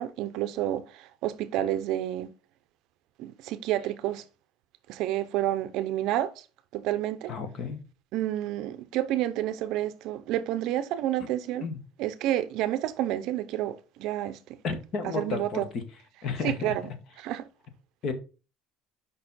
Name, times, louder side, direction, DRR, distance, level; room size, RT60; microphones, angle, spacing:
voice 1, 0.0-2.3 3.2-4.2 4.9-6.3 6.7-7.3 8.1-11.7 12.0-14.6 15.0-15.7 16.4-17.5, right 13 dB, 55° right, 0.6 m, -30 dB
voice 2, 7.3-7.8 11.6-11.8 14.6-15.6 16.2-16.7 18.0-18.1, left 4 dB, 40° left, 1.1 m, -32 dB
6.6 x 5.3 x 4.0 m
cardioid pair, 175°, 0 cm